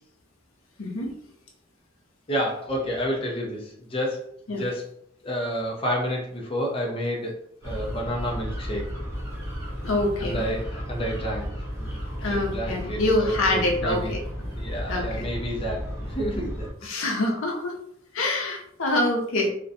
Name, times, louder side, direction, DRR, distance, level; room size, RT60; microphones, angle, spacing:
voice 1, 0.8-1.2 4.5-4.7 9.8-10.4 12.2-14.2 14.9-15.2 16.8-17.7 18.1-19.5, left 2 dB, 80° left, 2 dB, 0.5 m, -25 dB
voice 2, 2.3-4.2 4.5-4.9 5.2-7.4 7.6-8.9 10.2-11.5 11.8-14.1 14.5-17.1, equal, 25° left, -1 dB, 0.4 m, -30 dB
sound 1, 7.6-16.7, equal, 15° right, 0.9 m, -33 dB
2.6 x 2.1 x 2.5 m, 0.69 s
head